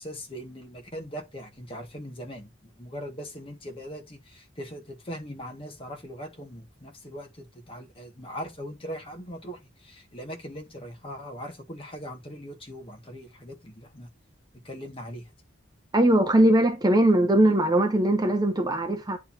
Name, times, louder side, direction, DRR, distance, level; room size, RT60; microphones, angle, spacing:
voice 1, 0.0-14.1 14.5-15.3, equal, 30° left, 1.8 m, -40 dB
voice 2, 15.9-19.2, right 1 dB, 20° right, 0.8 m, -20 dB
9.6 x 4.6 x 2.7 m
head